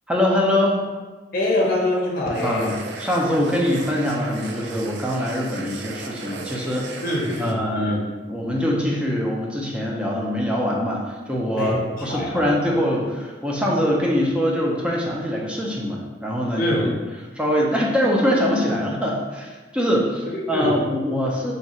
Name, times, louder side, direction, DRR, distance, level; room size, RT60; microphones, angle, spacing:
voice 1, 0.1-0.8 2.4-6.9 7.4-16.9 17.4-21.5, equal, 5° right, -3 dB, 0.5 m, -23 dB
voice 2, 1.3-2.8 7.0-8.0 11.6-11.8 12.1-12.5 16.6-16.9 20.3-20.8, left 1 dB, 55° left, -2 dB, 0.8 m, -24 dB
sound 1, 2.3-7.5, right 4 dB, 75° right, 0.4 m, -36 dB
2.8 x 2.3 x 4.1 m, 1.3 s
head